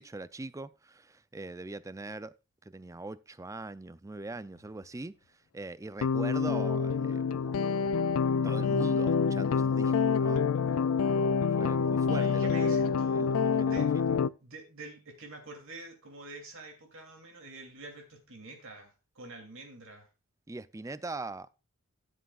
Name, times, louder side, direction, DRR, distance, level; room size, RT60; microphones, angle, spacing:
voice 1, 0.0-2.3 2.6-7.6 8.4-10.4 11.5-14.2 20.5-21.5, right 2 dB, 15° right, 0.4 m, -42 dB
sound 1, 6.0-14.3, left 5 dB, 70° left, 0.4 m, -27 dB
voice 2, 12.1-13.9 14.4-20.1, right 2 dB, 60° right, 2.8 m, -47 dB
15.0 x 7.9 x 2.4 m
head